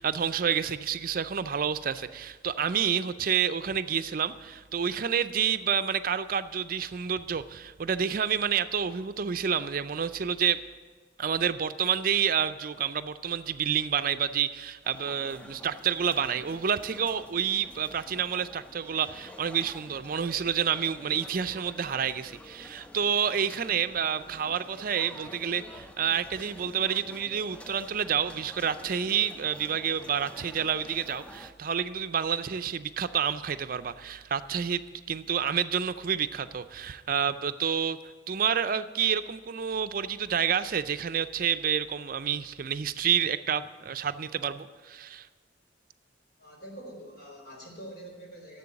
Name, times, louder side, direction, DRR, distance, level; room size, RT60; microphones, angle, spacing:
voice 1, 0.0-10.6 11.2-34.8 35.1-38.0 38.3-45.3, right 7 dB, 50° right, 12 dB, 0.5 m, -29 dB
sound 1, 14.8-31.5, left 1 dB, 5° left, 0.5 m, -49 dB
voice 2, 46.4-48.6, right 1 dB, 60° left, -1 dB, 3.9 m, -45 dB
11.0 x 7.7 x 9.7 m, 1.4 s
head